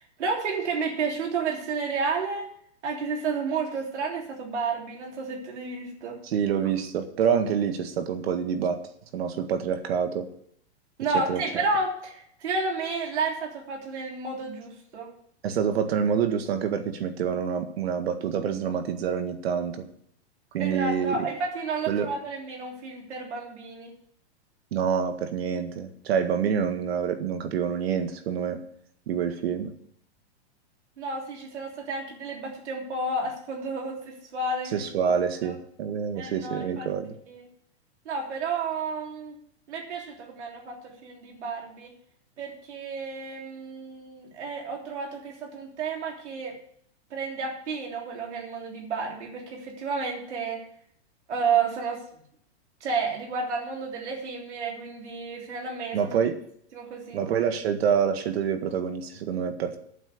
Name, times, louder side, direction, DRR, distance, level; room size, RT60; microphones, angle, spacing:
voice 1, 0.2-2.5 2.8-6.2 11.0-15.1 20.6-23.9 31.0-35.6 36.2-36.9 37.3-37.4 38.1-39.4 39.7-41.9 42.4-46.6 47.1-50.6 51.3-52.0 52.8-56.0 56.7-57.2, right 4 dB, 90° right, -1 dB, 3.5 m, -31 dB
voice 2, 6.2-8.8 9.1-10.3 11.3-11.6 15.4-19.8 20.5-21.3 21.9-22.1 24.7-28.6 29.1-29.7 34.7-37.1 55.9-56.4 57.1-59.8, right 7 dB, 65° right, 8 dB, 1.8 m, -27 dB
8.8 x 7.4 x 8.6 m, 0.66 s
hypercardioid pair, 155°, 34 cm